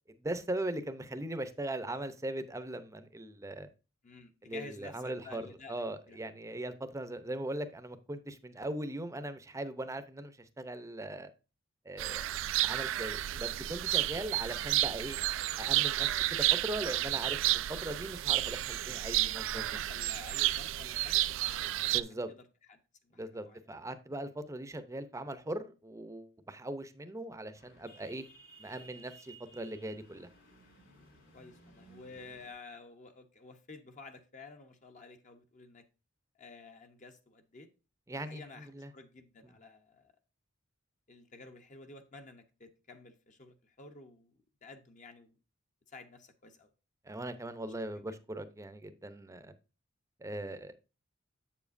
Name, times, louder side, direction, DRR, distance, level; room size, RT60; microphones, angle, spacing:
voice 1, 0.2-3.7 4.4-5.4 5.7-11.3 11.8-12.4 12.6-15.2 15.6-19.8 21.9-22.3 23.1-28.3 28.6-30.3 38.1-38.4 38.7-38.9 47.0-49.5 50.2-50.7, right 1 dB, 15° right, 0.6 m, -39 dB
voice 2, 4.0-6.2 13.2-13.7 18.7-19.0 19.5-22.4 22.7-23.7 31.3-35.8 36.3-37.7 38.1-40.1 41.1-45.4 45.9-46.7 47.6-48.0, left 3 dB, 40° left, 0.8 m, -52 dB
sound 1, 12.0-22.0, right 15 dB, 65° right, 0.3 m, -31 dB
sound 2, 27.5-32.5, right 2 dB, 65° left, 4.3 m, -57 dB
7.6 x 7.2 x 2.6 m
head